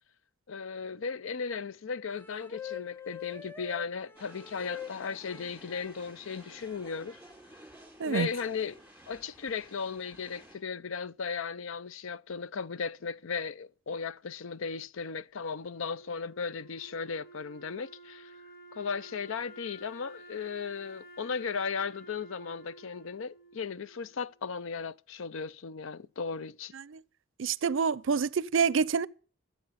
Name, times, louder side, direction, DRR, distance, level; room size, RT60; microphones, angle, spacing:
voice 1, 0.5-7.2 8.0-8.7 9.1-18.3 18.7-26.7, left 5 dB, 70° left, 0.5 m, -36 dB
sound 1, 2.1-5.9 6.7-7.3, left 8 dB, 10° left, 0.6 m, -44 dB
sound 2, 4.1-10.6, right 1 dB, 5° right, 4.2 m, -54 dB
Wind instrument woodwind instrument, 15.4-24.5, right 1 dB, 45° left, 1.5 m, -52 dB
voice 2, 27.4-29.1, right 5 dB, 65° right, 0.5 m, -27 dB
17.5 x 8.0 x 5.7 m
head